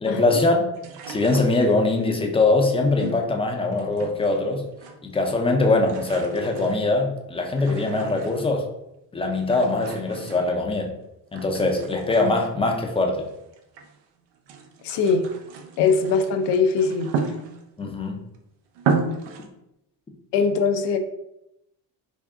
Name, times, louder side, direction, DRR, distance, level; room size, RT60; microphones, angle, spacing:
voice 1, 0.0-0.6 1.1-4.7 5.0-8.7 9.1-10.9 11.3-13.3 17.8-18.2, left 2 dB, 15° left, 2 dB, 0.4 m, -22 dB
sound 1, 0.7-2.0 3.0-4.4 4.7-5.3 5.6-8.7 9.3-10.9 11.3-14.0 14.3-17.9 18.3-18.4 18.7-19.5, right 5 dB, 80° right, 0.6 m, -34 dB
voice 2, 14.8-15.3 15.8-17.1 20.3-21.0, left 5 dB, 85° left, 6 dB, 0.6 m, -21 dB
3.6 x 2.3 x 3.5 m, 0.84 s
cardioid pair, 130°, 41 cm